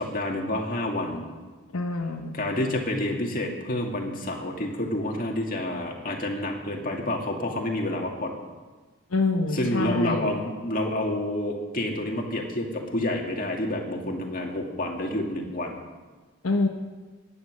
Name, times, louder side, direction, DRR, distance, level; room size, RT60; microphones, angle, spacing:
voice 1, 0.0-1.3 2.3-8.3 9.5-15.8, left 1 dB, 40° left, 1 dB, 2.2 m, -29 dB
voice 2, 1.7-2.4 9.1-10.3 16.4-16.7, left 3 dB, 85° left, 4 dB, 1.0 m, -26 dB
15.5 x 10.5 x 6.4 m, 1.3 s
head